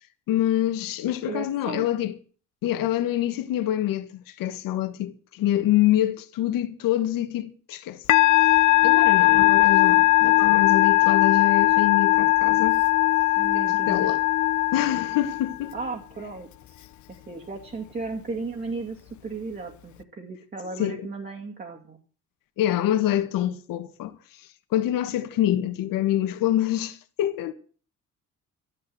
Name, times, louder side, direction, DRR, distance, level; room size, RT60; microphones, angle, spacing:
voice 1, 0.3-2.1 2.6-8.0 8.8-12.8 13.5-14.2 14.7-15.7 20.8-21.1 22.6-24.2 24.7-27.5, left 13 dB, 85° left, 1.7 m, -26 dB
voice 2, 1.3-1.8 13.4-14.1 15.7-16.8 17.1-22.0, right 3 dB, 30° right, 2.4 m, -35 dB
Musical instrument, 8.1-15.7, left 18 dB, 65° left, 0.9 m, -19 dB
13.0 x 11.0 x 7.9 m
cardioid pair, 135°, 33 cm